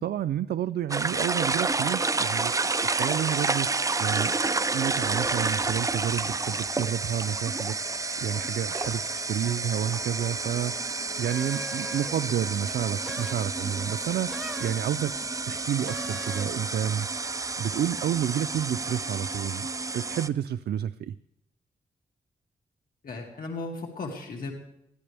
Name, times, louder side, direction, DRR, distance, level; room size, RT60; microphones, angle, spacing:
voice 1, 0.0-4.3 4.7-10.7 11.2-15.2 15.4-17.1 17.6-19.7 19.9-21.1, right 10 dB, 90° right, 12 dB, 0.4 m, -30 dB
sound 1, 0.9-20.3, right 3 dB, 20° right, 0.5 m, -30 dB
sound 2, 11.3-12.3 13.0-13.5 14.3-14.9 15.8-16.6, right 1 dB, 5° right, 1.1 m, -40 dB
voice 2, 23.0-24.5, left 3 dB, 60° left, 1 dB, 2.3 m, -36 dB
21.0 x 14.0 x 3.4 m, 0.79 s
wide cardioid pair, 120°, 16 cm